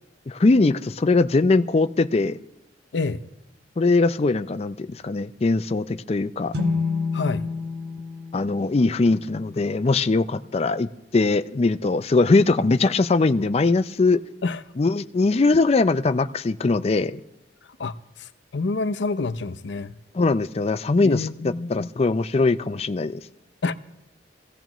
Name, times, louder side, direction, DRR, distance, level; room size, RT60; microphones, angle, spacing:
voice 1, 0.3-2.4 3.8-6.5 8.3-14.2 14.8-17.2 20.1-21.3 21.7-23.2, left 3 dB, 35° left, 0.4 m, -21 dB
sound 1, 6.5-10.1, left 4 dB, 60° right, 1.2 m, -29 dB
voice 2, 17.8-19.9 21.0-21.9 23.6-23.8, left 3 dB, 75° left, 0.6 m, -28 dB
22.0 x 15.5 x 3.0 m
head